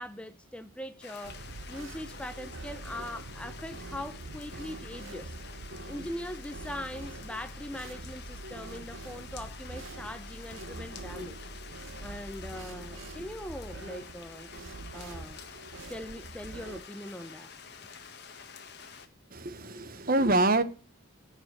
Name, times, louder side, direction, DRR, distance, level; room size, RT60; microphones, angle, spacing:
voice 1, 0.0-1.4 1.7-5.4 5.9-11.4 12.0-14.5 14.9-15.4 15.9-17.5, left 1 dB, 5° left, 0.6 m, -41 dB
sound 1, 1.0-19.1, left 6 dB, 50° left, 1.5 m, -49 dB
sound 2, 1.2-16.8, right 2 dB, 65° right, 0.9 m, -44 dB
voice 2, 19.3-20.6, right 2 dB, 40° right, 1.0 m, -25 dB
14.0 x 5.5 x 9.6 m
head